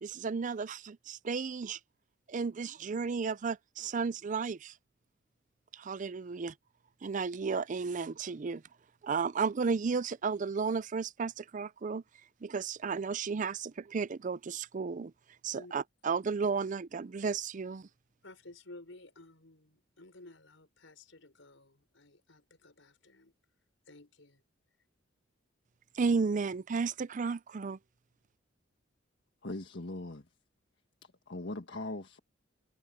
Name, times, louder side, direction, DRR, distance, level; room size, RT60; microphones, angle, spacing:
voice 1, 0.0-1.8 2.3-4.8 5.7-6.5 7.0-8.6 9.0-12.0 12.4-15.1 15.4-17.9 25.9-27.8, right 5 dB, 40° right, 0.4 m, -33 dB
voice 2, 18.2-23.3 23.9-24.4, left 2 dB, 80° left, 5.2 m, -54 dB
voice 3, 29.4-30.2 31.3-32.2, left 2 dB, 65° left, 1.6 m, -40 dB
head